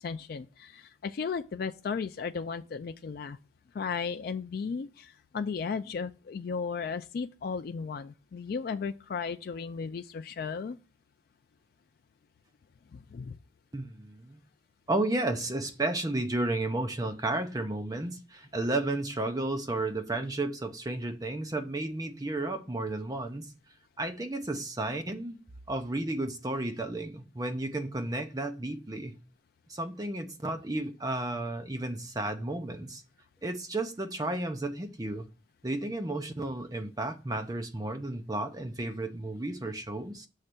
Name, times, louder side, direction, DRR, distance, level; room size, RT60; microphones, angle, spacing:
voice 1, 0.0-3.4 3.7-10.8 12.9-13.4, left 5 dB, 50° left, 0.3 m, -35 dB
voice 2, 13.7-14.4 14.9-23.5 24.0-25.4 25.7-29.1 29.7-33.0 33.4-35.2 35.6-40.3, right 2 dB, 20° right, 0.7 m, -33 dB
6.5 x 3.2 x 6.0 m
head